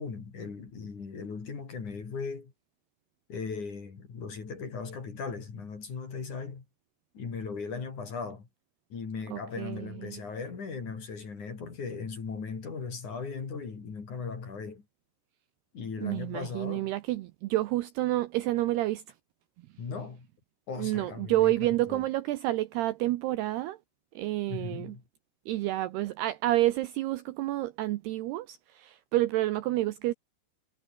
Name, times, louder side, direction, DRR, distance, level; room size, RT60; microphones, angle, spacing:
voice 1, 0.0-2.5 3.3-6.6 7.1-8.5 8.9-14.8 15.7-16.9 19.8-20.3 20.7-22.0 24.5-25.0, left 5 dB, 40° left, 5.1 m, -38 dB
voice 2, 9.3-10.2 16.0-19.0 20.8-23.8 24.2-25.0 25.5-30.1, right 16 dB, 85° right, 2.3 m, -29 dB
omnidirectional pair, 5.7 m